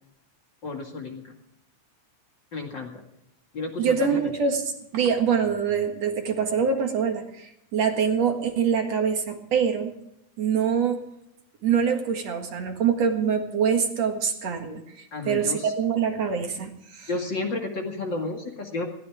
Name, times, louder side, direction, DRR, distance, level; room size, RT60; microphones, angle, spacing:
voice 1, 0.6-1.3 2.5-3.0 3.5-4.3 15.1-15.7 17.1-18.9, left 3 dB, 40° left, 2 dB, 2.6 m, -32 dB
voice 2, 3.8-4.6 4.9-9.9 10.4-11.0 11.6-14.8 15.2-17.1, right 6 dB, 60° right, 4 dB, 2.8 m, -24 dB
21.0 x 16.5 x 3.6 m, 0.79 s
omnidirectional pair, 3.4 m